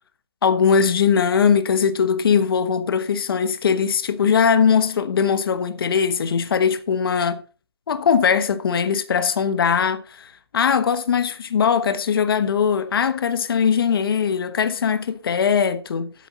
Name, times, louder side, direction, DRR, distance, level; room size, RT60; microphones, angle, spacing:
voice 1, 0.4-7.4 7.9-16.1, left 6 dB, 60° left, 1.2 m, -20 dB
12.5 x 8.6 x 4.2 m
hypercardioid pair, 160°, 14 cm